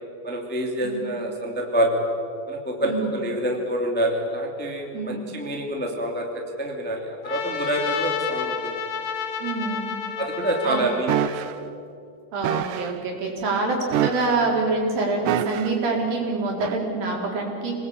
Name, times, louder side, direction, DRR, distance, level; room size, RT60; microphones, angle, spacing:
voice 1, 0.2-2.0 2.5-6.3 6.6-8.7 10.2-11.1, right 1 dB, 5° left, 0 dB, 2.0 m, -26 dB
voice 2, 2.8-3.2 4.9-5.2 9.4-9.9 10.6-10.8 12.3-17.7, right 3 dB, 60° right, -1 dB, 5.9 m, -26 dB
Trumpet, 7.2-11.7, left 7 dB, 85° left, 3.7 m, -31 dB
sound 1, 11.1-11.5 12.4-12.9 13.9-14.5 15.2-15.8 16.6-16.8, right 11 dB, 80° right, 1.9 m, -26 dB
27.5 x 20.0 x 8.7 m, 2.5 s
omnidirectional pair, 4.7 m